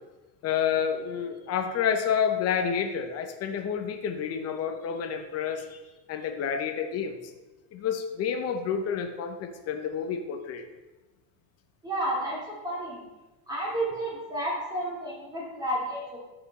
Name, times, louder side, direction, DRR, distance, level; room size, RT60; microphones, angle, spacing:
voice 1, 0.4-5.8 6.1-7.2 7.7-10.6, left 7 dB, 30° left, 6 dB, 0.9 m, -29 dB
voice 2, 11.8-13.0 13.5-16.2, right 1 dB, 10° right, -6 dB, 2.8 m, -31 dB
13.0 x 5.0 x 4.2 m, 1.1 s
cardioid pair, 155°, 47 cm